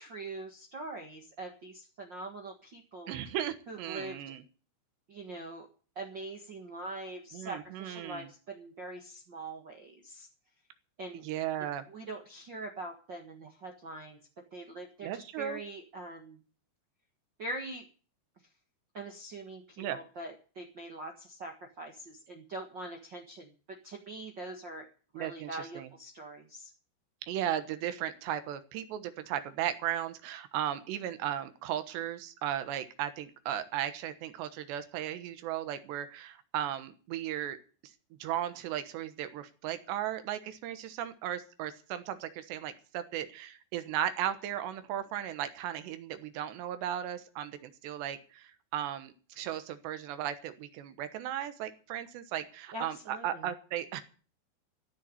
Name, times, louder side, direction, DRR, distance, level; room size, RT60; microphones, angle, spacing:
voice 1, 0.0-3.2 3.7-4.2 5.1-5.7 5.9-10.3 11.0-11.2 11.9-14.2 14.5-16.4 17.4-17.9 18.9-24.9 25.1-26.7 52.7-53.5, right 2 dB, 65° right, 2 dB, 1.1 m, -43 dB
voice 2, 3.1-4.4 7.3-8.3 11.1-11.9 15.0-15.6 19.8-20.0 25.2-25.9 27.2-37.6 38.2-54.0, right 11 dB, 85° right, 11 dB, 3.5 m, -36 dB
15.0 x 7.1 x 9.7 m, 0.38 s
omnidirectional pair, 4.8 m